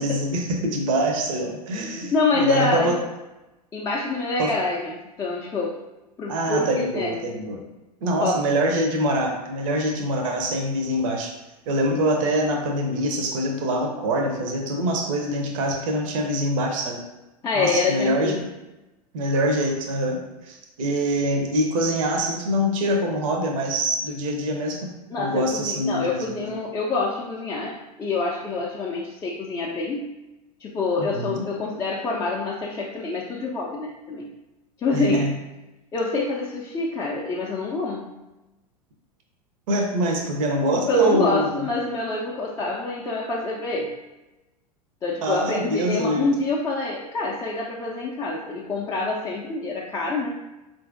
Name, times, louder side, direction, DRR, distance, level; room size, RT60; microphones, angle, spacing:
voice 1, 0.0-3.0 4.4-4.5 6.3-7.6 8.0-11.3 11.7-17.0 17.5-18.4 19.1-24.9 25.2-26.5 31.1-31.4 34.9-35.3 39.7-41.6 45.2-46.3, right 1 dB, 55° right, 2 dB, 0.6 m, -24 dB
voice 2, 1.8-3.0 3.7-5.7 6.2-7.2 8.2-8.4 17.4-18.4 25.1-30.1 30.6-34.3 34.8-35.3 35.9-38.0 40.9-43.9 45.0-50.3, left 3 dB, 15° left, -4 dB, 0.4 m, -26 dB
4.2 x 2.5 x 2.5 m, 1.0 s
figure-of-eight pair, 85°, 20 cm